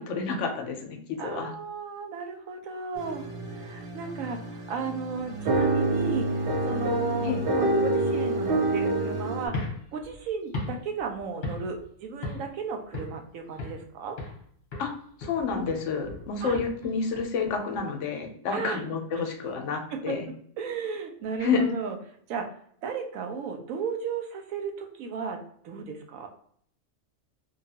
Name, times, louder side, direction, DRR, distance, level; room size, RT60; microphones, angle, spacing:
voice 1, 0.0-1.5 7.2-7.4 14.8-14.9 15.2-20.3 21.4-21.7, left 5 dB, 70° left, 4 dB, 0.9 m, -29 dB
voice 2, 1.2-14.2 16.4-16.6 18.5-18.8 19.9-22.0 22.3-22.5 22.8-26.3, right 5 dB, 85° right, 4 dB, 1.0 m, -35 dB
sound 1, 3.0-9.5, right 2 dB, 55° right, 0.7 m, -27 dB
sound 2, 9.5-11.9 12.2-12.6 12.9-13.9 14.2-14.5 14.7-17.8, left 2 dB, 45° left, 0.9 m, -37 dB
2.8 x 2.3 x 2.7 m, 0.63 s
omnidirectional pair, 1.4 m